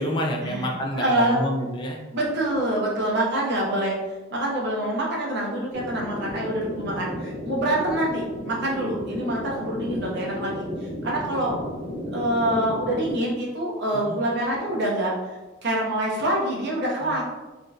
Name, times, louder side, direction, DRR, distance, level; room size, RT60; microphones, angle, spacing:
voice 1, 0.0-2.0 13.9-14.2 17.0-17.2, equal, 25° left, 1 dB, 0.3 m, -28 dB
voice 2, 1.0-1.4 2.1-4.0 4.3-10.7 11.0-11.5 12.1-15.1 15.6-17.2, right 1 dB, 55° right, -3 dB, 0.8 m, -25 dB
sound 1, 5.7-13.1, equal, 90° left, 1.3 m, -33 dB
3.6 x 2.5 x 2.4 m, 1.2 s
head